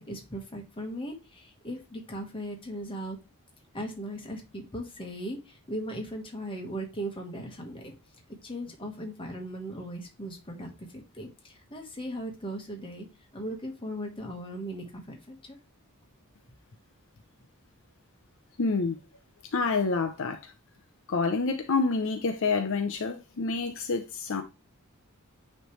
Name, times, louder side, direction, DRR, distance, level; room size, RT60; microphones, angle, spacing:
voice 1, 0.0-3.2 3.7-7.9 8.4-13.1 13.3-15.6, equal, 25° left, 1.4 m, -38 dB
voice 2, 18.6-19.0 19.5-20.5 21.1-24.4, left 4 dB, 65° left, 0.6 m, -28 dB
9.1 x 3.3 x 3.2 m
head